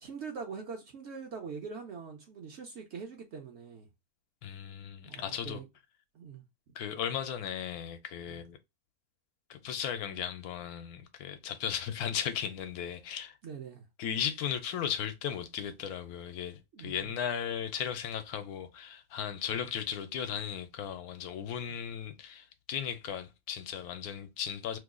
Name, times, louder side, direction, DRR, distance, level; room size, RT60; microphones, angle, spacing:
voice 1, 0.0-3.9 5.0-5.6 6.1-6.4 8.3-8.4 13.4-13.9 16.7-17.1 19.5-19.6 21.7-21.8, right 5 dB, 60° right, 0.7 m, -43 dB
voice 2, 4.4-5.6 6.7-8.6 9.5-13.4 14.0-24.8, left 8 dB, 80° left, 1.1 m, -36 dB
3.0 x 2.2 x 3.5 m
omnidirectional pair, 1.6 m